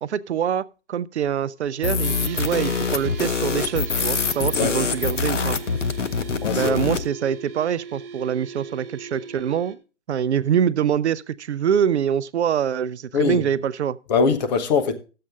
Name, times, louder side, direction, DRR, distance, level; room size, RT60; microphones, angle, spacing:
voice 1, 0.0-5.6 6.5-9.8 10.1-14.0, right 8 dB, 70° right, 0.5 m, -24 dB
sound 1, 1.8-7.1, left 5 dB, 90° left, 0.9 m, -24 dB
sound 2, 2.0-9.8, right 5 dB, 55° right, 1.4 m, -39 dB
voice 2, 6.4-6.8 13.1-13.4 14.1-14.9, left 5 dB, 40° left, 1.1 m, -21 dB
12.0 x 7.7 x 3.6 m
hypercardioid pair, 135°, 35 cm